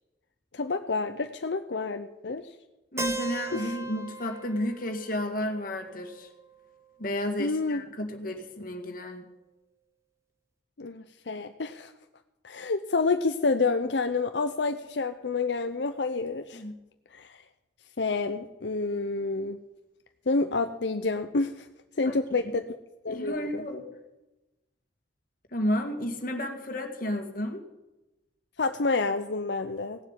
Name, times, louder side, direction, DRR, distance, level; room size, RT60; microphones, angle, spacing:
voice 1, 0.5-2.4 3.5-3.7 7.4-7.8 10.8-11.9 12.4-16.6 17.1-17.3 18.0-19.6 20.3-21.7 22.0-22.7 23.0-23.6 28.6-30.0, left 3 dB, 80° left, 7 dB, 0.7 m, -28 dB
voice 2, 2.9-6.3 7.0-9.2 16.5-16.8 22.0-22.2 22.4-22.5 23.1-23.9 25.5-27.6, left 1 dB, 50° left, 4 dB, 2.1 m, -32 dB
Keyboard (musical), 3.0-6.9, right 3 dB, 15° right, 0.9 m, -38 dB
17.5 x 7.5 x 8.2 m, 1.0 s
head